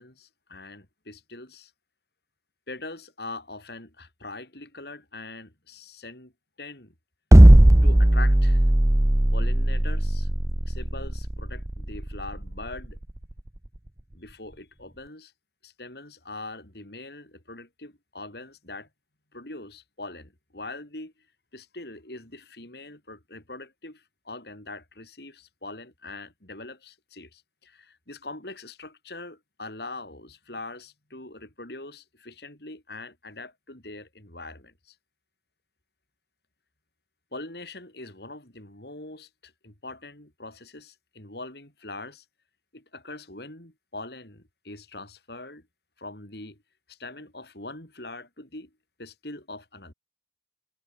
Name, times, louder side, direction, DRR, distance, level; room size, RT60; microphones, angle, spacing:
voice 1, 0.0-1.7 2.7-6.3 6.6-6.9 7.8-8.6 9.3-10.3 10.7-13.0 14.1-15.3 15.6-18.9 19.3-21.1 21.5-34.9 37.3-42.2 42.7-45.7 46.0-46.6 46.9-48.7 49.0-49.9, left 2 dB, 60° left, 4.9 m, -42 dB
sound 1, 7.3-13.5, right 1 dB, 15° right, 0.6 m, -17 dB
head